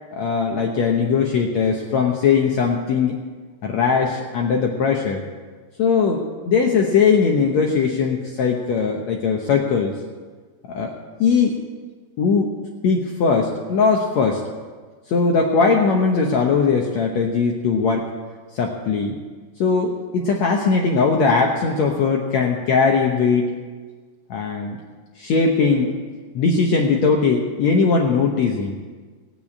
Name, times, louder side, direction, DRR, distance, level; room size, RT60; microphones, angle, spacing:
voice 1, 0.1-3.1 3.6-5.2 5.8-9.9 10.7-10.9 11.2-11.6 12.2-12.5 12.8-14.4 15.1-18.1 18.5-19.2 19.6-23.5 24.3-24.8 25.2-25.9 26.3-28.8, left 5 dB, 85° left, 1 dB, 1.5 m, -19 dB
19.0 x 7.0 x 8.5 m, 1.5 s
omnidirectional pair, 4.6 m